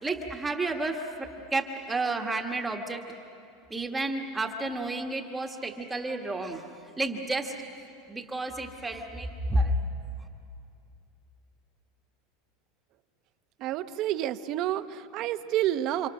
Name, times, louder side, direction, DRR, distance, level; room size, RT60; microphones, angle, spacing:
voice 1, 0.0-3.1 3.7-6.6 7.0-7.5 8.1-9.8, right 2 dB, 10° right, 2 dB, 1.4 m, -31 dB
voice 2, 13.6-16.1, right 12 dB, 45° right, 11 dB, 0.8 m, -29 dB
29.5 x 25.5 x 6.3 m, 2.5 s
supercardioid pair, 145°, 0 cm